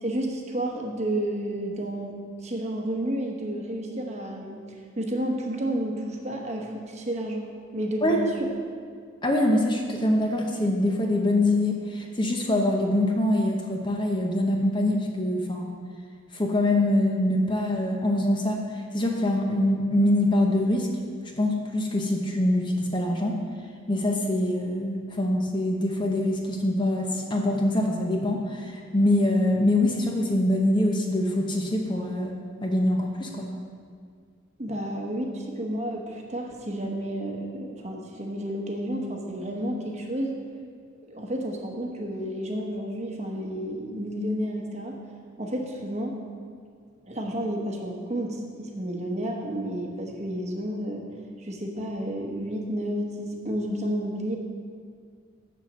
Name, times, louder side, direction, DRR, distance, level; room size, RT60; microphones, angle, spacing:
voice 1, 0.0-2.1 2.4-4.6 5.0-8.3 34.6-40.4 41.1-45.0 45.4-46.2 47.0-51.1 51.4-54.4, right 1 dB, 35° right, 1 dB, 1.0 m, -31 dB
voice 2, 9.2-15.7 16.3-18.6 18.9-20.9 21.4-23.4 23.9-32.3 32.6-33.5, left 1 dB, 25° left, 1 dB, 0.8 m, -24 dB
7.3 x 7.0 x 6.2 m, 2.1 s
head